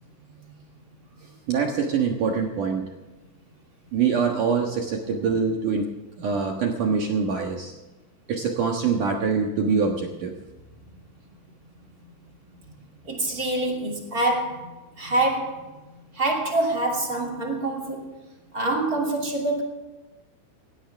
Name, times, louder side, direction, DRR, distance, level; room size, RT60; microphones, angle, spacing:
voice 1, 1.5-2.9 3.9-5.9 6.2-7.7 8.3-10.3, right 5 dB, 70° right, 1 dB, 1.9 m, -24 dB
voice 2, 13.0-15.7 16.1-18.1 18.5-19.6, right 2 dB, 30° right, 0 dB, 2.0 m, -26 dB
19.0 x 16.5 x 3.5 m, 1.1 s
omnidirectional pair, 5.8 m